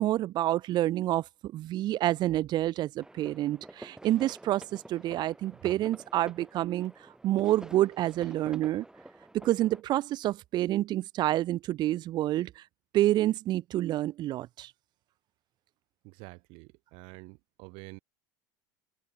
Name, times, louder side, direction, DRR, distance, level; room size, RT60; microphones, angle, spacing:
voice 1, 0.0-6.9 7.2-8.8 9.3-12.6 12.9-14.7, right 14 dB, 50° right, 0.9 m, -28 dB
sound 1, 3.0-9.8, right 1 dB, 5° right, 7.2 m, -49 dB
voice 2, 16.0-18.0, right 30 dB, 70° right, 2.1 m, -48 dB
supercardioid pair, 110°, 10 cm